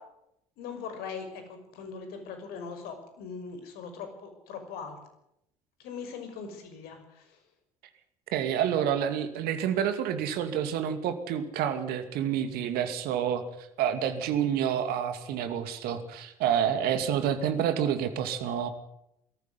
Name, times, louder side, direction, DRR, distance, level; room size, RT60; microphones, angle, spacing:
voice 1, 0.6-5.0 5.8-7.4 9.7-9.8, left 5 dB, 65° left, 7 dB, 5.9 m, -41 dB
voice 2, 8.3-18.7, right 9 dB, 65° right, 9 dB, 2.5 m, -28 dB
22.0 x 14.5 x 9.7 m, 0.82 s
hypercardioid pair, 55°, 17 cm